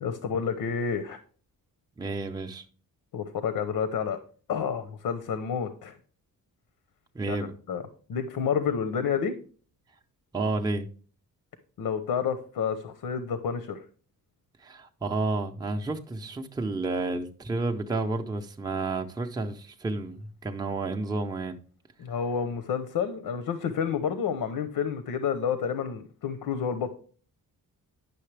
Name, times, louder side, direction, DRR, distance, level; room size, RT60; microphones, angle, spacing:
voice 1, 0.0-1.2 3.1-4.2 4.5-6.0 7.3-7.4 7.7-7.8 8.1-9.4 11.8-13.9 22.0-26.9, left 7 dB, 80° left, 0.9 m, -29 dB
voice 2, 2.0-2.6 7.1-7.5 10.3-10.9 14.6-21.6, right 3 dB, 10° right, 0.5 m, -31 dB
10.0 x 6.5 x 3.3 m
wide cardioid pair, 175°, 35 cm